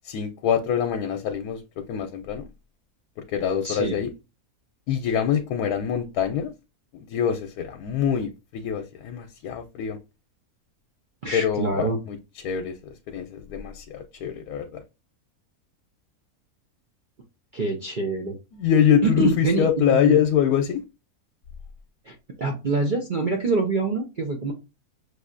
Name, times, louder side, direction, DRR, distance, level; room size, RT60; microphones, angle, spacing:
voice 1, 0.0-2.5 3.3-4.1 4.9-6.5 6.9-10.0 11.3-12.2 12.4-14.8 18.5-20.8, left 8 dB, 85° left, 6 dB, 1.1 m, -24 dB
voice 2, 3.6-4.0 11.2-12.0 17.5-18.4 19.0-20.2 22.0-24.5, right 3 dB, 55° right, 1 dB, 0.5 m, -26 dB
6.2 x 2.6 x 2.4 m, 0.28 s
omnidirectional pair, 1.6 m